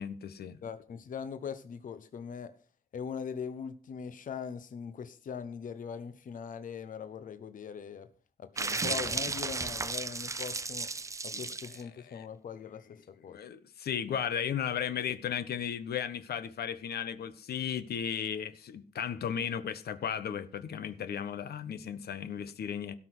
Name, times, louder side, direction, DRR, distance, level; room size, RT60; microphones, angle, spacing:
voice 1, 0.0-0.6 11.3-11.5 12.1-12.2 13.3-22.9, left 8 dB, 85° left, 1.2 m, -35 dB
voice 2, 0.6-2.5 2.9-8.1 8.4-10.9 11.2-13.4, left 6 dB, 55° left, 0.9 m, -41 dB
sound 1, 8.6-11.8, right 3 dB, 20° right, 0.6 m, -34 dB
17.0 x 6.1 x 6.1 m
wide cardioid pair, 165°, 16 cm